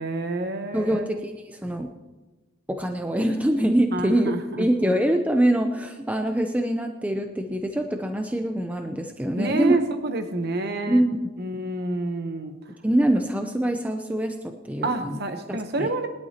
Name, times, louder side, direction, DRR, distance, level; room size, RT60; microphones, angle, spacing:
voice 1, 0.0-1.1 3.9-4.9 9.4-11.0 11.4-12.5 14.8-16.1, right 2 dB, 55° right, 7 dB, 0.9 m, -28 dB
voice 2, 0.7-1.9 2.7-4.3 4.6-9.7 10.9-11.2 12.8-15.2 15.5-15.9, right 1 dB, 5° right, 5 dB, 0.6 m, -24 dB
21.0 x 11.5 x 2.9 m, 1.2 s
head